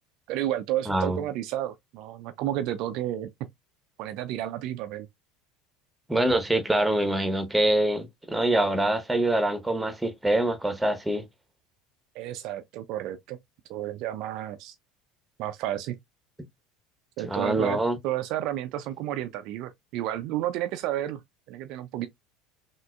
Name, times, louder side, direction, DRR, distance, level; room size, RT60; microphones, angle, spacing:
voice 1, 0.3-3.3 4.0-5.1 12.1-13.4 13.7-14.8 15.4-16.0 17.2-21.2 21.5-22.1, right 13 dB, 50° right, 0.3 m, -31 dB
voice 2, 0.9-1.2 6.1-11.2 17.2-18.0, right 1 dB, 5° right, 1.0 m, -25 dB
5.8 x 2.4 x 2.2 m
figure-of-eight pair, 70°, 0 cm